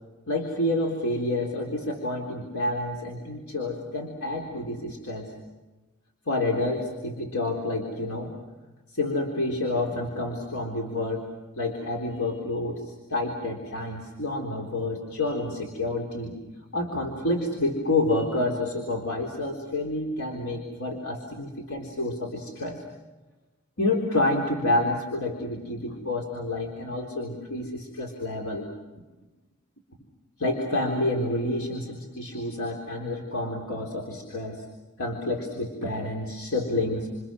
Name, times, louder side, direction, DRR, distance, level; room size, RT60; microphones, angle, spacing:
voice 1, 0.3-5.3 6.3-8.4 8.9-11.3 11.6-16.4 16.7-22.8 23.8-28.7 30.4-34.6 35.0-37.1, left 2 dB, 75° left, 0 dB, 3.8 m, -29 dB
29.0 x 28.0 x 6.3 m, 1.2 s
head